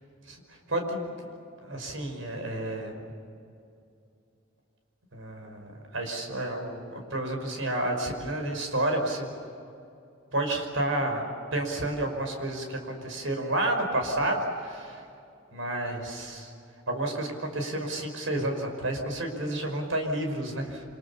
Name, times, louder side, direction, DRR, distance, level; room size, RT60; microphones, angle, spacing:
voice 1, 0.2-1.1 1.6-2.9 5.1-9.3 10.3-15.0 15.5-16.5 16.9-20.8, right 1 dB, 85° right, 4 dB, 5.5 m, -30 dB
28.0 x 27.0 x 7.2 m, 2.6 s
head